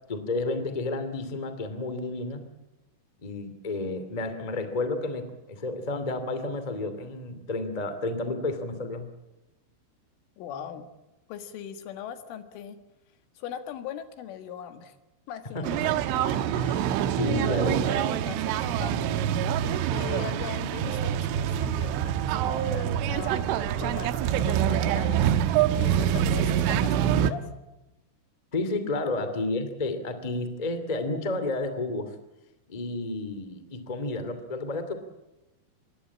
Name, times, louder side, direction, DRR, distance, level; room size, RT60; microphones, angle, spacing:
voice 1, 0.1-2.4 3.2-9.1 15.5-15.9 16.6-18.0 28.5-32.1 32.7-34.9, left 2 dB, 20° left, 10 dB, 1.1 m, -31 dB
voice 2, 10.4-10.9 11.3-12.8 13.4-15.0 15.3-15.7 16.9-17.1 17.3-23.5 23.8-25.3 25.8-27.5 29.2-29.4, left 9 dB, 85° left, 9 dB, 4.2 m, -40 dB
sound 1, 15.6-27.3, right 10 dB, 85° right, 3.5 m, -25 dB
26.0 x 21.0 x 8.6 m, 0.98 s
omnidirectional pair, 5.5 m